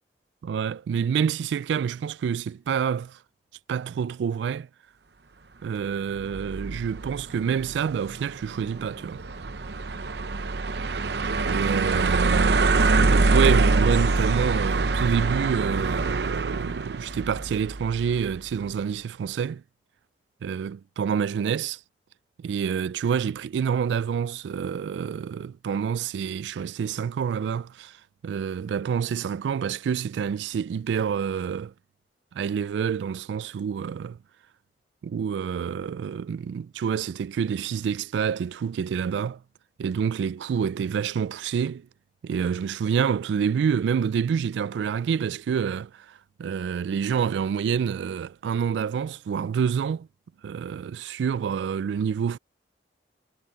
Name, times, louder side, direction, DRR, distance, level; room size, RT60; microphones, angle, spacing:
voice 1, 0.4-3.2 3.7-4.7 5.6-9.2 11.4-19.6 20.4-21.8 22.4-28.0 28.2-31.7 32.3-34.2 35.0-39.4 39.8-41.9 42.2-50.1 50.4-52.4, right 7 dB, 85° right, 0.3 m, -27 dB
sound 1, 6.2-18.4, right 3 dB, 70° right, 0.8 m, -25 dB
head